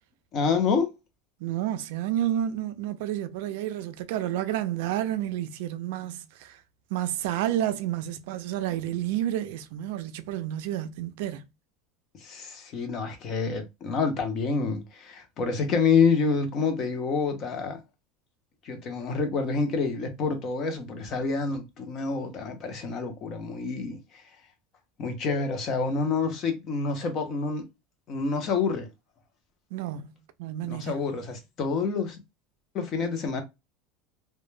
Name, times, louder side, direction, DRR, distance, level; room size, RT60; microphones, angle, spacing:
voice 1, 0.3-0.9 12.2-17.8 18.6-24.0 25.0-27.6 28.1-28.9 30.7-32.2 32.7-33.4, left 5 dB, 35° left, 0.6 m, -27 dB
voice 2, 1.4-6.6 6.9-11.4 29.7-30.1 30.4-31.0, right 12 dB, 70° right, 0.3 m, -30 dB
2.1 x 2.1 x 3.1 m
supercardioid pair, 165°, 0 cm